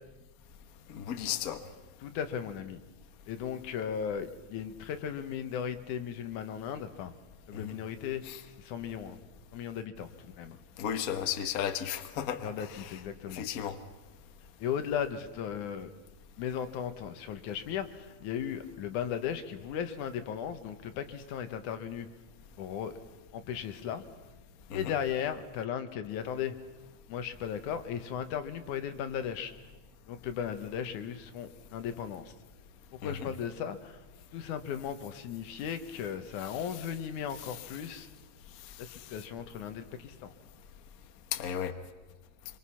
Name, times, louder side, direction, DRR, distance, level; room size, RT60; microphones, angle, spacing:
voice 1, 0.9-1.6 7.5-7.6 8.3-8.4 10.8-12.6 13.3-13.8 24.7-24.9 33.0-33.1 41.3-41.7, left 9 dB, 65° left, 9 dB, 0.8 m, -34 dB
voice 2, 2.0-2.8 3.3-7.1 7.5-8.2 8.6-9.2 9.5-10.6 12.4-13.4 14.6-15.9 16.4-22.1 22.6-22.9 23.3-24.0 24.7-26.6 27.1-29.5 30.1-32.3 32.9-34.0 34.3-38.1 38.8-40.3, left 8 dB, 85° left, 10 dB, 2.6 m, -36 dB
26.0 x 24.5 x 5.7 m, 1.3 s
omnidirectional pair, 3.5 m